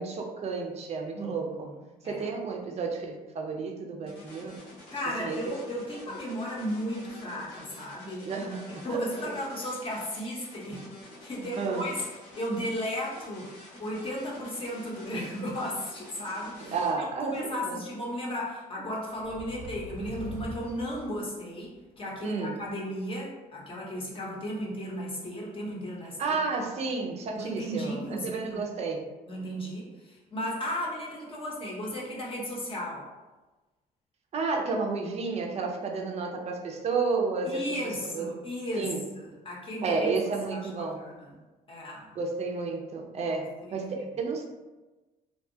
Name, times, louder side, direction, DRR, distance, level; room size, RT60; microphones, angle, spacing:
voice 1, 0.0-1.7 2.0-4.6 5.2-5.4 8.2-9.3 11.6-11.9 16.7-17.8 22.2-22.6 26.2-29.0 34.3-37.6 38.0-38.3 38.7-39.0 39.8-41.0 42.2-44.4, right 4 dB, 40° right, 1 dB, 0.4 m, -31 dB
voice 2, 1.2-1.8 2.0-2.2 4.9-8.4 8.8-12.0 12.3-13.5 13.8-26.4 27.3-28.7 29.3-33.1 37.4-40.1 40.5-40.7 41.0-41.3 41.7-42.1 43.6-44.1, equal, 30° left, -3 dB, 0.7 m, -35 dB
sound 1, 4.1-16.9, left 2 dB, 80° left, 1.0 m, -49 dB
sound 2, 19.1-21.9, left 1 dB, 90° right, 0.5 m, -43 dB
2.5 x 2.2 x 2.7 m, 1.2 s
cardioid pair, 110°, 17 cm